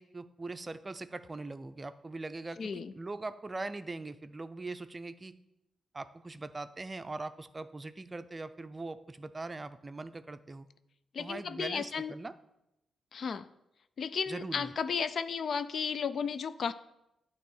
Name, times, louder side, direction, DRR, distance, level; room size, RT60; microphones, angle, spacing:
voice 1, 0.0-5.3 5.9-10.7 11.2-12.3 14.3-14.7, right 3 dB, 30° right, 11 dB, 0.4 m, -41 dB
voice 2, 2.6-2.9 11.1-12.1 13.1-13.5 14.0-16.7, left 6 dB, 60° left, 14 dB, 0.3 m, -34 dB
9.0 x 3.0 x 6.3 m, 0.87 s
cardioid pair, 65°, 0 cm